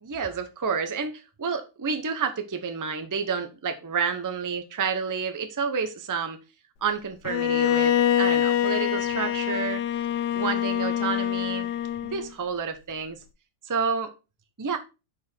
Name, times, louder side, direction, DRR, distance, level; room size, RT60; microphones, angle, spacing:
voice 1, 0.0-6.4 6.8-9.8 10.3-11.7 12.0-13.2 13.6-14.1 14.6-14.8, right 6 dB, 25° right, 0.4 m, -29 dB
Bowed string instrument, 7.3-12.3, left 10 dB, 75° left, 1.1 m, -25 dB
6.2 x 4.7 x 4.4 m
omnidirectional pair, 1.8 m